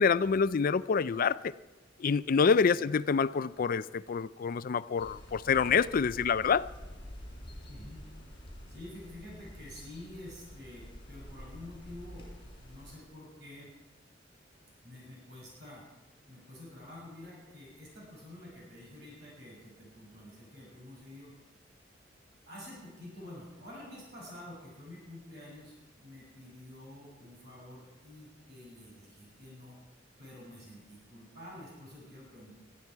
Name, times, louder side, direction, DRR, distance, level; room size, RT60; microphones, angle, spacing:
voice 1, 0.0-1.5 2.0-6.7, left 5 dB, 50° left, 0.4 m, -27 dB
sound 1, 5.0-13.0, equal, 25° left, 5.4 m, -48 dB
voice 2, 7.7-8.1 8.7-12.3 12.5-13.7 14.8-15.8 16.3-21.4 22.5-29.8 30.2-32.5, left 1 dB, 65° right, 6.7 m, -49 dB
20.5 x 13.5 x 4.6 m
head